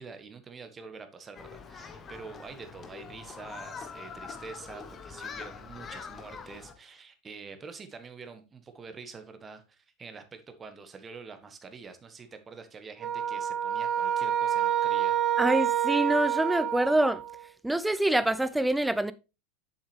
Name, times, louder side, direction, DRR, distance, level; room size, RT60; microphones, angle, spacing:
voice 1, 0.0-15.2, right 5 dB, 25° right, 1.4 m, -46 dB
Human group actions, 1.3-6.7, left 6 dB, 30° left, 1.1 m, -44 dB
sound 1, 13.0-17.4, right 10 dB, 40° right, 0.8 m, -28 dB
voice 2, 15.4-17.2 17.6-19.1, right 1 dB, 5° right, 0.5 m, -25 dB
7.2 x 7.1 x 3.2 m
hypercardioid pair, 85°, 0 cm